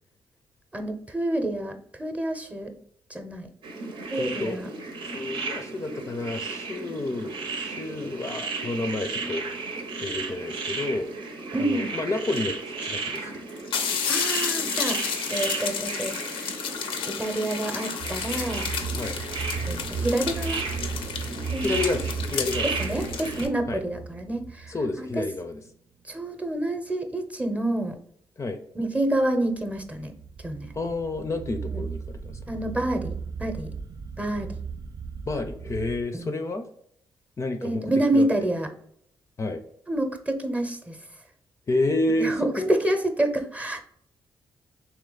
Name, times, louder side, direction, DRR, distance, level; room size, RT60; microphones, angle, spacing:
voice 1, 0.7-2.8 3.1-3.5 4.1-4.7 9.2-9.3 11.5-12.0 14.1-16.1 17.0-18.7 19.7-20.6 21.5-21.7 22.8-25.1 26.0-28.0 28.7-30.1 30.4-30.7 31.7-31.8 32.5-33.7 34.2-34.5 36.1-36.3 37.6-38.7 39.9-41.0 42.2-43.8, right 1 dB, 15° right, 6 dB, 0.8 m, -28 dB
sound 1, 3.6-23.4, right 3 dB, 70° right, 0.8 m, -34 dB
voice 2, 4.1-4.6 5.0-9.5 10.0-11.1 11.6-13.3 19.0-19.2 21.6-23.2 23.7-23.8 24.7-25.6 28.4-28.6 30.7-32.4 35.3-36.7 37.4-37.9 38.1-38.5 39.4-39.6 41.7-42.7, left 2 dB, 35° left, 7 dB, 0.5 m, -30 dB
sound 2, 12.3-12.4 13.1-13.2 13.5-23.5, left 7 dB, 85° left, 0.5 m, -32 dB
sound 3, 18.0-25.7 29.5-36.0, right 5 dB, 45° right, 0.4 m, -36 dB
3.2 x 2.9 x 3.9 m, 0.69 s
supercardioid pair, 65°, 9 cm